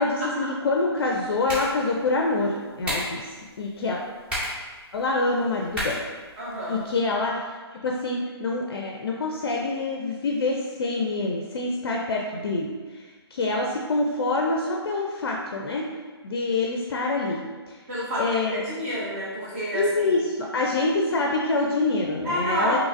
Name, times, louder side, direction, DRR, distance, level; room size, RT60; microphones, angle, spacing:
voice 1, 0.0-4.0 4.9-6.0 6.7-7.4 7.8-13.0 13.3-15.9 16.2-17.4 17.7-17.8 18.2-18.6 19.7-22.8, left 3 dB, 60° left, 0 dB, 0.4 m, -26 dB
sound 1, 0.9-6.9, equal, 5° right, 0.7 m, -36 dB
voice 2, 6.4-6.8 17.9-20.2 22.2-22.8, equal, 30° right, -8 dB, 1.2 m, -29 dB
3.7 x 2.8 x 2.5 m, 1.4 s
hypercardioid pair, 150°, 14 cm